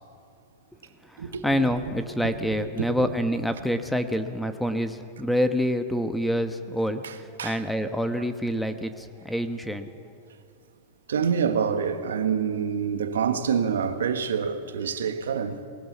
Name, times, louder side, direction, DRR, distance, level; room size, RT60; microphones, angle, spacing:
voice 1, 1.1-9.9, equal, ahead, 1.1 m, -27 dB
voice 2, 2.2-2.6 3.0-3.1 7.0-7.6 8.2-8.3 11.1-15.6, right 7 dB, 80° right, 1.4 m, -27 dB
19.5 x 19.0 x 7.3 m
hypercardioid pair, 100°, 0 cm